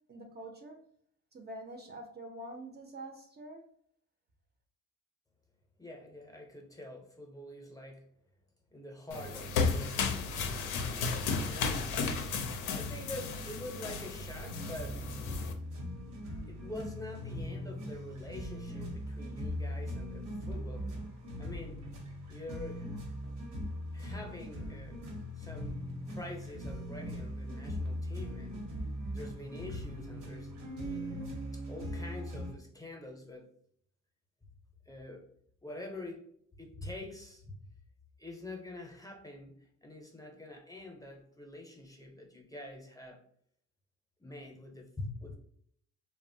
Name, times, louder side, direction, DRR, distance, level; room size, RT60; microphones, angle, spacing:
voice 1, 0.1-0.8 1.3-3.6, right 1 dB, 35° right, 3 dB, 0.4 m, -45 dB
voice 2, 5.8-8.1 8.7-10.5 11.4-11.8 12.7-15.1 16.5-20.9 21.4-21.9 22.3-22.9 23.9-25.0 25.4-28.7 29.1-30.5 30.8-31.2 31.5-33.5 34.9-35.3 35.6-36.3 36.6-37.6 38.2-43.2 44.2-45.4, left 1 dB, 10° left, 1 dB, 0.6 m, -46 dB
sound 1, 9.1-15.5, left 4 dB, 90° left, 0.5 m, -34 dB
sound 2, 14.4-32.5, equal, 85° right, 0.9 m, -40 dB
2.9 x 2.0 x 2.6 m, 0.65 s
cardioid pair, 90°, 30 cm